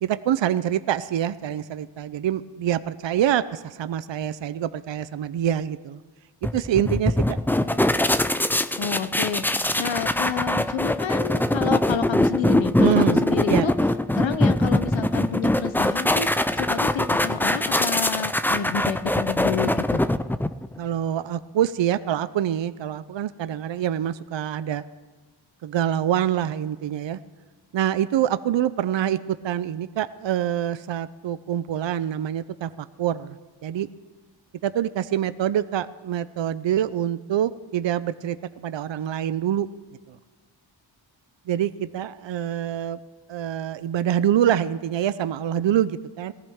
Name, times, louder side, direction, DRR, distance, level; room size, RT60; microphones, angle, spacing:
voice 1, 0.0-6.0 6.4-7.4 12.8-13.2 13.5-13.7 20.8-24.8 25.6-27.2 27.7-33.4 33.6-33.9 34.6-39.7 41.5-43.0 43.3-46.3, right 10 dB, 70° right, 14 dB, 0.5 m, -25 dB
sound 1, 6.4-20.8, left 1 dB, 5° left, 0.3 m, -22 dB
voice 2, 8.8-13.7 14.2-20.0, left 7 dB, 75° left, 12 dB, 0.9 m, -29 dB
18.5 x 14.0 x 3.6 m, 1.3 s
wide cardioid pair, 70°, 47 cm